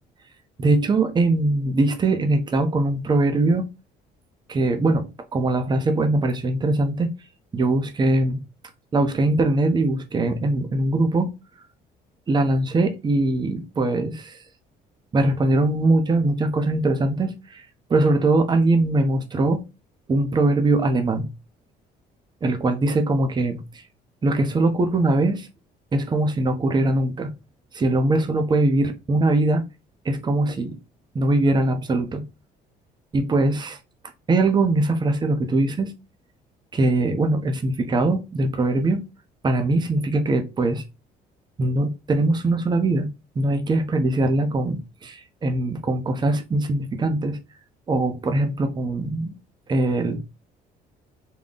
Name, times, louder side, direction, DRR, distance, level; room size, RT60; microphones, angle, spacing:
voice 1, 0.6-3.6 4.5-7.1 7.5-8.4 8.9-11.3 12.3-14.4 15.1-19.6 20.1-21.3 22.4-23.8 24.2-25.5 25.9-27.3 27.7-29.6 30.0-30.8 31.1-32.2 33.1-33.8 34.3-35.9 36.7-39.0 39.4-40.8 41.6-43.1 43.4-47.4 47.9-49.3 49.7-50.2, right 2 dB, 25° right, 0.7 m, -21 dB
3.8 x 2.2 x 3.8 m
cardioid pair, 110°, 17 cm